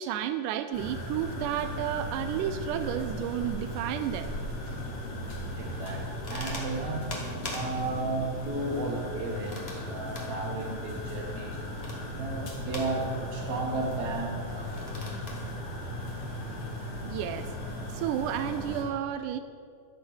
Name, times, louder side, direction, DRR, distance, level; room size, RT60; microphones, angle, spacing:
voice 1, 0.0-4.3 17.0-17.5 17.9-19.4, right 10 dB, 85° right, 10 dB, 1.8 m, -32 dB
sound 1, 0.7-18.8, left 1 dB, 45° left, 3.4 m, -37 dB
voice 2, 5.6-7.1 7.5-11.6 12.1-15.1, right 2 dB, 55° right, 1 dB, 2.7 m, -34 dB
sound 2, 5.9-16.8, left 1 dB, 30° left, 1.3 m, -46 dB
13.0 x 8.5 x 6.3 m, 2.3 s
omnidirectional pair, 4.2 m